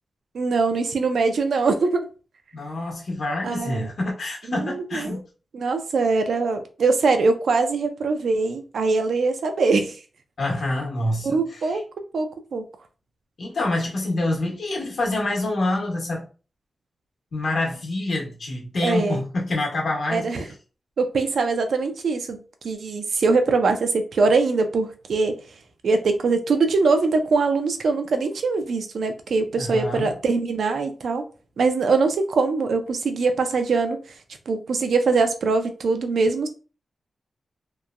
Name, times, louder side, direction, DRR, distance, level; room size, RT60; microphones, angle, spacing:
voice 1, 0.3-2.1 3.4-3.9 4.5-5.2 5.5-10.0 11.2-11.8 12.1-12.6 18.8-19.2 20.1-20.4 21.0-22.4 22.6-25.4 25.8-31.2 31.6-34.0 34.5-36.5, right 4 dB, 80° right, 0.4 m, -22 dB
voice 2, 2.5-5.2 10.4-11.8 13.4-16.2 17.3-20.5 29.5-30.1, left 2 dB, 70° left, 1.0 m, -27 dB
2.9 x 2.2 x 2.4 m
wide cardioid pair, 105°, 0 cm